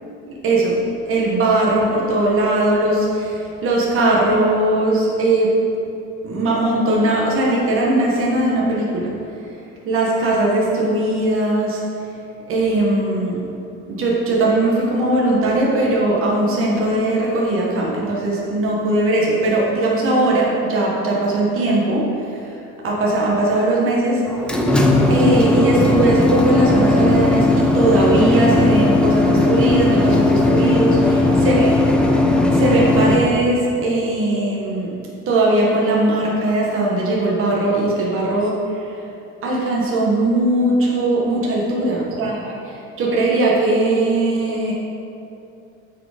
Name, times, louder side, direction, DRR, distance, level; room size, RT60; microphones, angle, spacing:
voice 1, 0.4-0.8 1.1-5.6 6.2-9.1 9.9-11.8 12.5-13.4 13.9-22.1 22.8-24.2 25.1-31.8 32.5-34.9 35.3-38.5 39.4-44.7, right 2 dB, 40° right, -4 dB, 1.4 m, -19 dB
sound 1, 24.3-33.2, left 2 dB, 5° left, 0.7 m, -16 dB
8.7 x 5.0 x 5.0 m, 2.7 s
cardioid pair, 145°, 32 cm